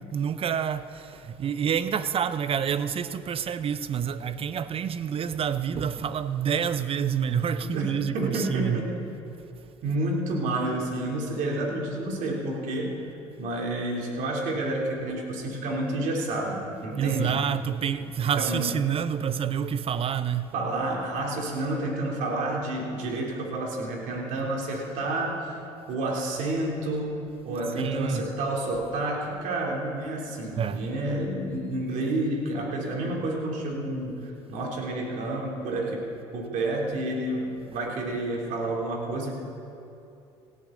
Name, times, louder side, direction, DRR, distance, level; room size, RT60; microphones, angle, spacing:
voice 1, 0.1-8.8 16.9-20.5 27.8-28.2 30.5-30.8, right 8 dB, 40° right, 0.7 m, -28 dB
voice 2, 8.1-8.9 9.8-12.9 13.4-17.4 18.2-18.7 20.5-25.6 25.9-36.0 36.3-39.3, right 2 dB, 65° right, 3.2 m, -29 dB
17.5 x 14.0 x 3.9 m
hypercardioid pair, 75°, 14 cm